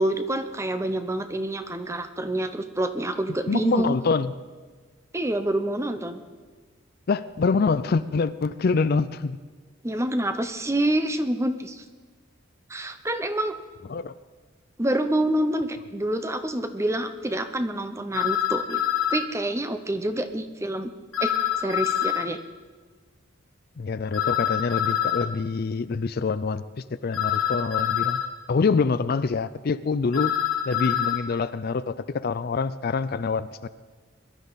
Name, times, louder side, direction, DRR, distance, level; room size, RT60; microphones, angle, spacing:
voice 1, 0.0-3.9 5.1-6.2 9.8-11.8 12.7-13.6 14.8-18.8 19.1-20.9 21.2-22.4, right 1 dB, 15° right, 9 dB, 0.7 m, -27 dB
voice 2, 3.5-4.3 7.1-9.4 13.9-14.1 23.8-26.6 27.0-28.2 28.5-30.3 30.7-33.7, left 4 dB, 50° left, 14 dB, 0.4 m, -25 dB
sound 1, 18.1-19.3 21.1-22.3 24.1-25.3 27.1-28.3 30.1-31.2, left 10 dB, 90° left, 1.7 m, -25 dB
22.0 x 12.0 x 4.0 m, 1.4 s
head